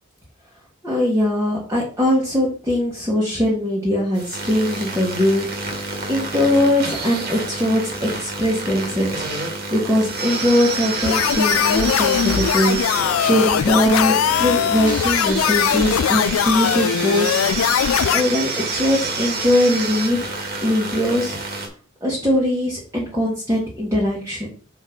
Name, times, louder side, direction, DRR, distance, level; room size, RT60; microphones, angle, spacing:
voice 1, 0.8-9.4 9.7-17.7 18.1-20.3 20.6-21.4 22.0-24.5, left 1 dB, 15° right, -6 dB, 1.6 m, -21 dB
sound 1, 4.1-21.7, right 3 dB, 45° right, 1.9 m, -28 dB
sound 2, 11.0-18.2, left 9 dB, 85° left, 0.3 m, -20 dB
6.2 x 5.1 x 3.9 m, 0.38 s
head